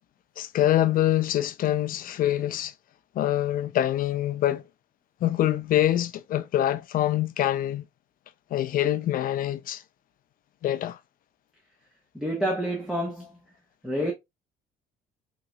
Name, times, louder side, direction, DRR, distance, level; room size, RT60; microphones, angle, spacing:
voice 1, 0.4-2.7 3.1-4.6 5.2-7.8 8.5-9.8 10.6-11.0, left 12 dB, 55° left, 0.5 m, -25 dB
voice 2, 12.1-13.4 13.8-14.1, equal, 5° right, 1.0 m, -28 dB
3.8 x 3.0 x 2.3 m
cardioid pair, 110°, 17 cm